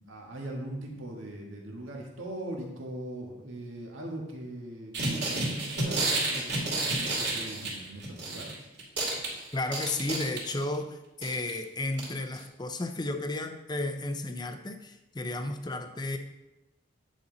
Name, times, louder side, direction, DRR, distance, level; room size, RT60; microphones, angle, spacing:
voice 1, 0.0-8.5, right 1 dB, 75° right, 0 dB, 1.7 m, -40 dB
sound 1, 4.9-8.5 8.8-10.7 11.2-11.5 12.0-12.1 12.3-12.4, right 2 dB, 55° right, 2.5 m, -30 dB
voice 2, 9.5-16.2, left 2 dB, 20° left, 7 dB, 0.5 m, -33 dB
9.7 x 5.4 x 4.0 m, 0.96 s
head